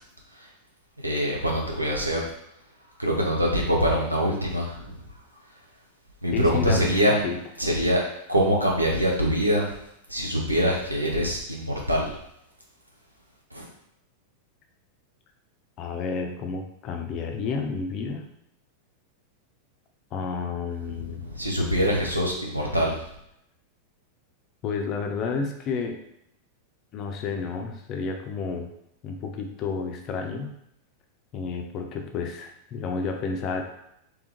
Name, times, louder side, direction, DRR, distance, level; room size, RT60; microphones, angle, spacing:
voice 1, 1.0-2.3 3.0-5.0 6.2-7.2 7.6-8.0 8.3-9.7 10.1-12.1 13.5-13.7 21.2-23.0, equal, 85° right, -2 dB, 0.9 m, -24 dB
voice 2, 6.3-7.4 15.8-18.3 20.1-21.2 24.6-26.0 26.9-28.7 29.0-30.5 31.3-33.6, left 5 dB, 35° left, 3 dB, 0.6 m, -31 dB
3.5 x 3.4 x 3.0 m, 0.77 s
figure-of-eight pair, 90°, 0 cm